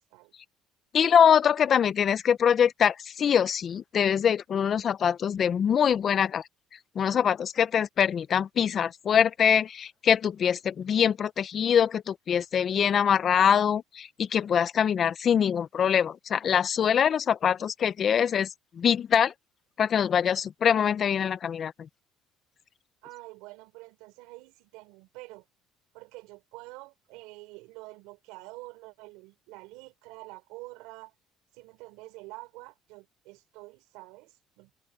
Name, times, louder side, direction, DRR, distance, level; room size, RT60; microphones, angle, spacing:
voice 1, 0.9-6.4 7.0-18.5 18.8-19.3 19.8-21.7, left 8 dB, 45° left, 0.7 m, -24 dB
voice 2, 23.0-25.4 25.9-31.1 31.5-34.7, right 23 dB, 90° right, 5.4 m, -47 dB
cardioid pair, 105°, 0 cm